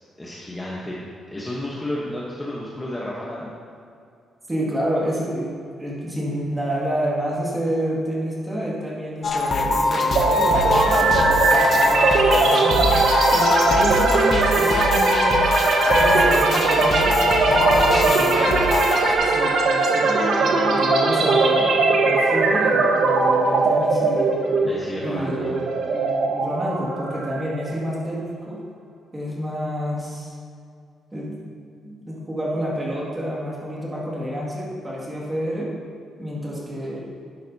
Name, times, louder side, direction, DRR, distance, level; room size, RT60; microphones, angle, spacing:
voice 1, 0.2-1.0 1.3-3.5 24.6-25.5 25.9-26.0, left 1 dB, 10° left, -5 dB, 1.0 m, -31 dB
voice 2, 4.5-5.5 5.8-15.4 15.9-17.2 17.4-18.6 19.2-24.3 25.0-25.6 25.9-28.6 29.1-30.4 31.1-31.4 31.8-35.7 36.2-37.0, equal, 10° right, -5 dB, 2.0 m, -29 dB
sound 1, 9.2-19.2, left 2 dB, 35° left, 0.9 m, -22 dB
sound 2, 10.2-27.9, right 3 dB, 65° right, 1.1 m, -20 dB
12.0 x 10.0 x 2.7 m, 2.3 s
cardioid pair, 175°, 0 cm